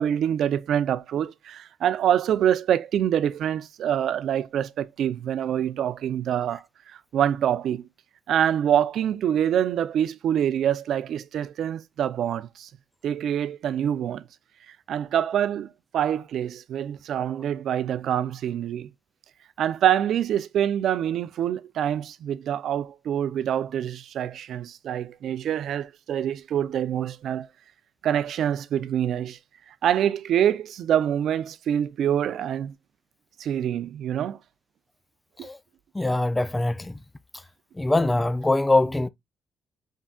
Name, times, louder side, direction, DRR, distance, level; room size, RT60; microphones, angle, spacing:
voice 1, 0.0-7.9 8.3-12.7 13.0-14.3 14.9-18.9 19.6-27.5 28.0-29.4 29.8-32.7 33.4-34.4 35.4-35.5, right 10 dB, 70° right, 0.5 m, -25 dB
voice 2, 35.9-36.9 37.8-39.1, left 2 dB, 15° left, 0.3 m, -23 dB
5.5 x 3.6 x 2.3 m
cardioid pair, 90°, 0 cm